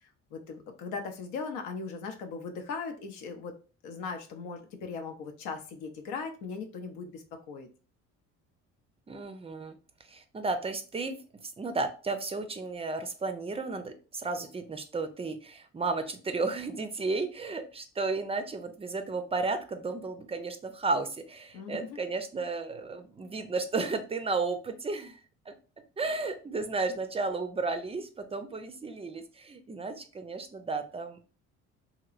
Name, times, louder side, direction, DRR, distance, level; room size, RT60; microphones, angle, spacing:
voice 1, 0.0-3.6 3.8-7.7 21.5-22.0, left 4 dB, 90° left, 5 dB, 0.7 m, -39 dB
voice 2, 9.1-9.7 10.0-11.2 11.6-25.2 25.5-25.6 26.0-31.3, right 3 dB, 20° right, 8 dB, 0.4 m, -33 dB
2.9 x 2.9 x 2.4 m, 0.36 s
cardioid pair, 95°, 29 cm